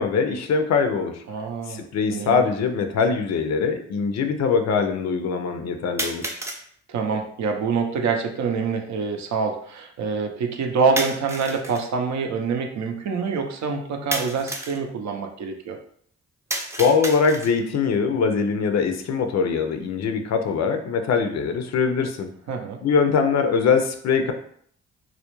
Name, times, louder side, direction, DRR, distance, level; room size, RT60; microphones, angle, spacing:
voice 1, 0.0-1.2 1.7-6.4 16.8-22.3 22.8-24.3, left 5 dB, 55° left, 6 dB, 0.5 m, -22 dB
voice 2, 1.3-1.8 2.1-2.5 6.9-15.8 22.5-22.8, right 5 dB, 60° right, 4 dB, 0.5 m, -26 dB
sound 1, 1.6-1.7 2.7-2.8 6.0-6.6 11.0-11.9 14.1-14.8 16.5-17.7, right 1 dB, 10° right, 0.4 m, -31 dB
2.3 x 2.0 x 2.9 m, 0.62 s
hypercardioid pair, 45°, 32 cm